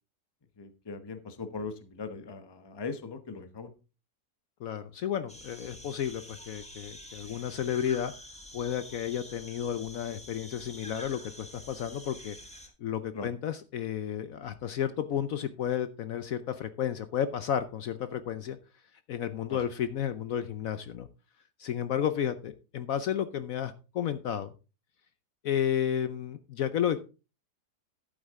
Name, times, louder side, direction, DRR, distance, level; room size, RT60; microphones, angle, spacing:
voice 1, 0.6-3.7 13.1-13.3 19.5-19.6, left 4 dB, 20° left, 9 dB, 0.8 m, -39 dB
voice 2, 4.6-8.1 8.5-12.4 12.8-18.6 19.1-21.1 21.6-24.5 25.4-27.0, left 9 dB, 65° left, 12 dB, 1.0 m, -32 dB
sound 1, 5.3-12.7, left 1 dB, 5° left, 1.7 m, -47 dB
11.5 x 8.6 x 3.6 m, 0.32 s
omnidirectional pair, 1.8 m